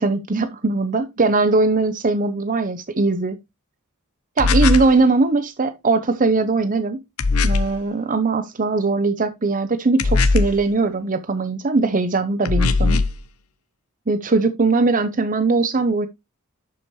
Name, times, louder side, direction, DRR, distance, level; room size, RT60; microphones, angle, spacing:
voice 1, 0.0-3.4 4.4-7.0 7.4-13.0 14.1-16.1, right 3 dB, 40° right, 0.7 m, -20 dB
sound 1, 4.4-5.0 7.2-7.8 10.0-10.7 12.4-13.2, left 3 dB, 85° left, 0.9 m, -19 dB
11.0 x 6.0 x 3.1 m
head